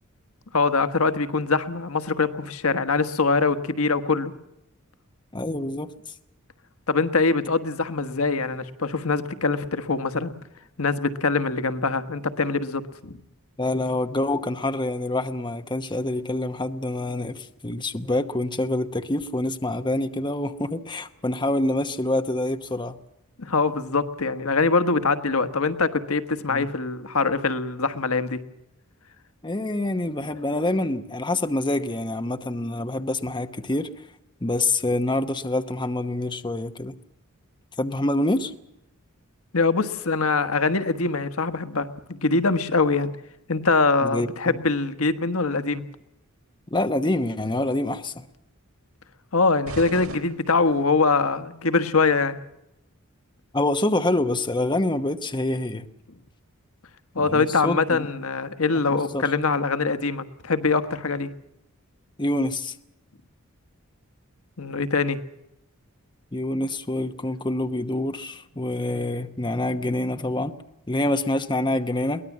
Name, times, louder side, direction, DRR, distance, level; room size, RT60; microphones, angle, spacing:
voice 1, 0.5-4.3 6.9-10.3 10.8-13.2 23.4-28.4 39.5-43.1 43.5-45.8 49.3-52.4 57.1-61.3 64.6-65.2, left 4 dB, 80° left, 11 dB, 1.4 m, -23 dB
voice 2, 5.3-6.1 13.6-23.0 26.5-26.7 29.4-33.9 34.4-36.9 37.8-38.5 44.0-44.6 46.7-48.3 53.5-55.8 57.2-58.1 59.1-59.2 62.2-62.8 66.3-70.6 70.9-72.2, left 1 dB, 20° left, 8 dB, 1.0 m, -26 dB
sound 1, 49.6-51.1, right 2 dB, 75° right, 3.2 m, -38 dB
23.0 x 18.5 x 7.3 m, 0.86 s
head